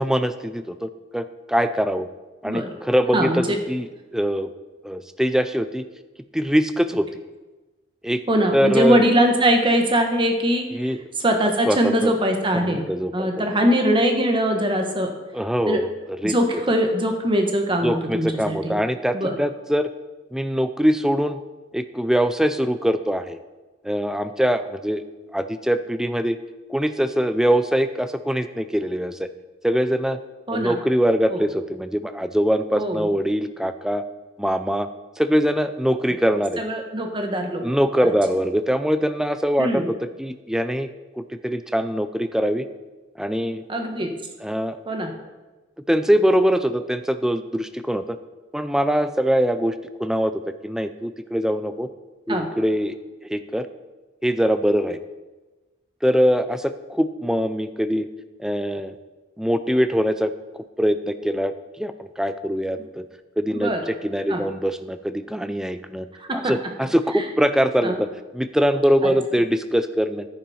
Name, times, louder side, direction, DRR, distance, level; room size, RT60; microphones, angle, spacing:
voice 1, 0.0-2.1 2.4-4.5 4.8-5.8 6.3-7.2 8.0-8.2 8.5-9.0 10.7-11.0 11.7-12.2 12.5-13.4 15.3-16.4 17.8-19.9 20.3-21.4 21.7-23.4 23.8-25.0 25.3-26.4 26.7-29.3 29.6-30.2 30.5-34.0 34.4-34.9 35.2-36.6 37.6-40.9 41.2-42.6 43.2-43.6 44.4-44.8 45.9-48.2 48.5-50.3 50.6-51.9 52.3-53.0 53.3-53.7 54.2-55.0 56.0-58.1 58.4-58.9 59.4-63.0 63.4-66.1 66.3-68.1 68.3-70.3, equal, 5° right, 10 dB, 0.5 m, -23 dB
voice 2, 3.1-3.6 8.3-10.7 11.2-12.8 13.1-15.1 15.7-15.8 16.2-18.8 19.1-19.4 30.5-30.8 31.3-31.4 32.8-33.0 36.6-37.6 38.0-38.1 39.6-39.9 43.7-44.1 44.9-45.1 52.3-52.5 63.5-63.8 64.3-64.4 66.2-66.4 67.8-68.0 69.0-69.1, equal, 25° right, 4 dB, 1.3 m, -21 dB
10.5 x 10.0 x 4.3 m, 1.2 s
head